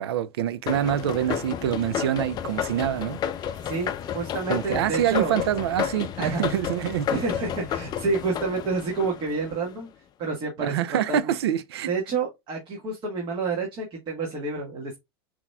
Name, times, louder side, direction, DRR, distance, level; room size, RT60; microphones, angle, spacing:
voice 1, 0.0-3.2 4.5-7.1 10.6-11.9, right 11 dB, 90° right, 0.5 m, -26 dB
sound 1, 0.7-9.8, left 9 dB, 30° left, 0.5 m, -31 dB
voice 2, 3.6-5.4 6.2-6.4 7.1-9.9 10.2-11.3 11.9-15.0, right 4 dB, 40° right, 1.6 m, -29 dB
5.8 x 3.0 x 2.2 m
supercardioid pair, 125°, 13 cm